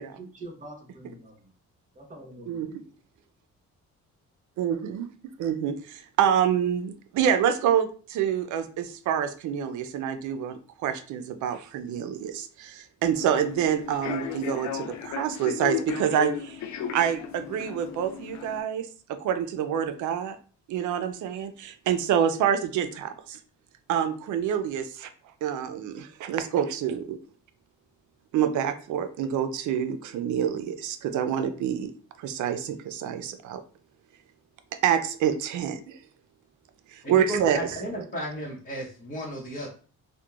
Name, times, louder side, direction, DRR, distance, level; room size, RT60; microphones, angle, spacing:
voice 1, 0.2-1.5 1.9-2.6, right 2 dB, 25° right, -2 dB, 1.1 m, -44 dB
voice 2, 4.6-5.1 5.4-16.6 16.9-20.4 20.7-23.4 23.9-25.1 25.4-27.2 28.3-31.9 32.2-33.6 34.8-36.0 36.9-37.7, right 9 dB, 75° right, 9 dB, 0.4 m, -27 dB
Human voice / Subway metro underground, 13.1-18.6, left 8 dB, 70° left, 0.5 m, -35 dB
voice 3, 37.0-39.7, equal, 30° left, -4 dB, 0.9 m, -34 dB
2.8 x 2.1 x 2.3 m, 0.40 s
cardioid pair, 90°, 30 cm